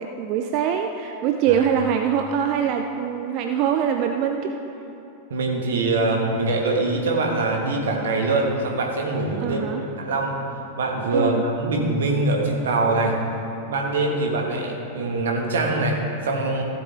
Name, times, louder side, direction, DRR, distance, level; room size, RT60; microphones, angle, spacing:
voice 1, 0.0-4.5 9.4-9.8 11.1-11.4, right 8 dB, 40° right, 5 dB, 0.5 m, -23 dB
voice 2, 5.3-9.6 10.0-10.4 10.8-13.1 13.7-16.6, right 2 dB, 65° right, 0 dB, 1.6 m, -23 dB
15.5 x 7.6 x 3.5 m, 3.0 s
figure-of-eight pair, 90°, 0 cm